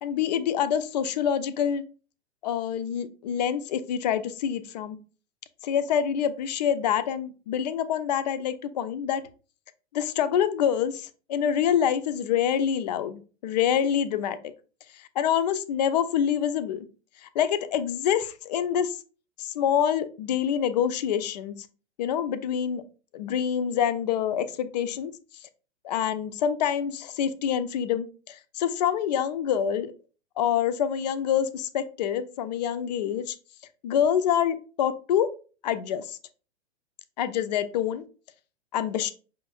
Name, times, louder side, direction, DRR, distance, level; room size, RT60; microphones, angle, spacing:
voice 1, 0.0-1.8 2.4-5.0 5.6-9.2 9.9-14.4 15.2-16.9 17.2-19.0 19.4-21.5 22.0-22.8 23.1-25.1 25.8-29.9 30.4-33.3 33.8-35.3 35.6-36.2 37.2-38.0 38.7-39.1, left 9 dB, 40° left, 12 dB, 0.5 m, -26 dB
5.2 x 3.2 x 2.3 m, 0.37 s
figure-of-eight pair, 110°, 33 cm